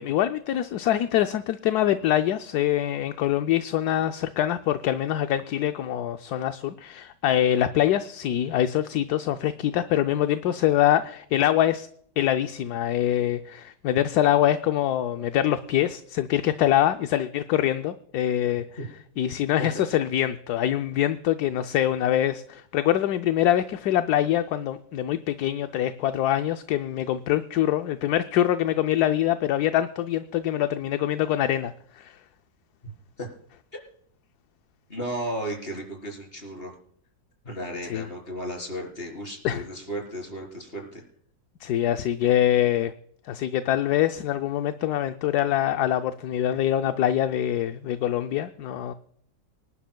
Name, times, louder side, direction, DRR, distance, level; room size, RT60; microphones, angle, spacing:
voice 1, 0.0-11.9 12.2-18.6 19.2-32.1 37.9-38.1 39.4-39.6 41.6-42.9 43.3-48.9, left 12 dB, 70° left, 9 dB, 1.1 m, -24 dB
voice 2, 32.8-33.3 34.9-36.7 37.4-41.0, right 1 dB, 30° left, 1 dB, 4.3 m, -34 dB
25.5 x 11.5 x 2.3 m, 0.64 s
omnidirectional pair, 2.0 m